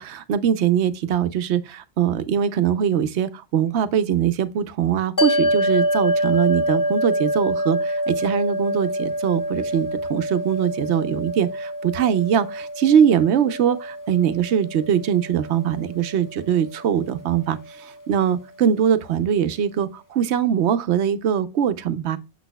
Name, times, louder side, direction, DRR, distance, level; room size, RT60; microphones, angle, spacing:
voice 1, 0.0-22.2, right 9 dB, 70° right, 0.9 m, -22 dB
sound 1, 5.2-17.7, equal, 30° left, 0.3 m, -26 dB
7.2 x 6.1 x 2.2 m
omnidirectional pair, 1.2 m